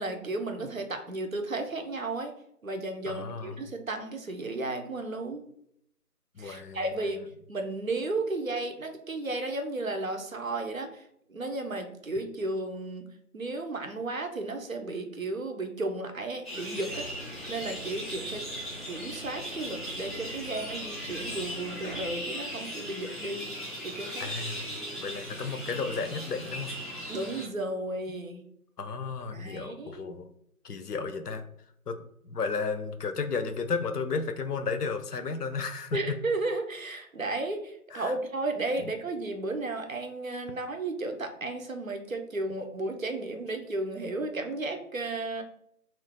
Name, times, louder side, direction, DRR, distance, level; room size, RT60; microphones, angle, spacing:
voice 1, 0.0-2.3 2.6-5.4 6.4-7.2 7.5-11.0 11.3-13.0 13.3-17.1 17.5-18.4 18.9-23.5 23.8-24.3 27.1-28.4 29.3-30.0 35.9-45.4, right 2 dB, 60° right, 5 dB, 0.6 m, -34 dB
voice 2, 3.1-3.7 6.4-6.8 24.2-26.7 28.8-30.3 30.6-31.4 31.9-32.0 32.2-36.2 37.9-38.2 38.8-38.9, left 4 dB, 90° left, 9 dB, 0.6 m, -33 dB
sound 1, 16.4-27.4, equal, ahead, 0.6 m, -38 dB
sound 2, 16.9-22.0, equal, 45° left, 0.6 m, -46 dB
2.5 x 2.4 x 3.6 m, 0.72 s
figure-of-eight pair, 170°, 45 cm